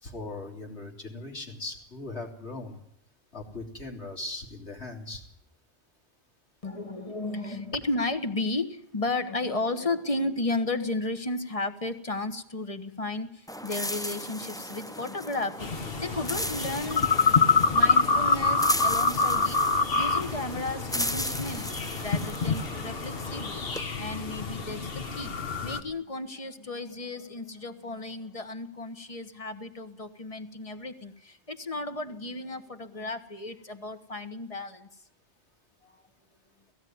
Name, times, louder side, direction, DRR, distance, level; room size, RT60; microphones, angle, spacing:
voice 1, 0.0-2.8 3.3-5.2, left 2 dB, 90° left, 0 dB, 3.9 m, -39 dB
voice 2, 6.6-21.7 22.0-23.6 23.9-34.9 35.8-35.9, left 2 dB, 30° left, 9 dB, 1.4 m, -34 dB
sound 1, 13.5-23.8, equal, 5° left, 0.6 m, -36 dB
sound 2, 15.6-25.8, left 4 dB, 60° left, 1.5 m, -26 dB
17.5 x 16.0 x 9.5 m, 0.68 s
omnidirectional pair, 1.1 m